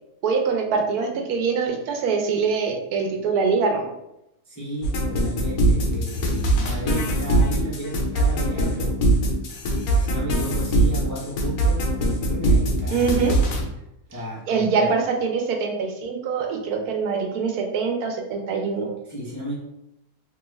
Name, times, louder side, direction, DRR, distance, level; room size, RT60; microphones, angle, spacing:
voice 1, 0.2-3.9 12.9-13.5 14.5-18.9, right 5 dB, 85° right, 3 dB, 1.1 m, -24 dB
voice 2, 4.4-9.3 9.6-13.1 14.1-14.9 19.0-19.6, right 1 dB, 25° left, -7 dB, 0.4 m, -34 dB
sound 1, 4.8-13.6, right 1 dB, 80° left, 1.1 m, -21 dB
2.9 x 2.3 x 3.1 m, 0.87 s
omnidirectional pair, 1.6 m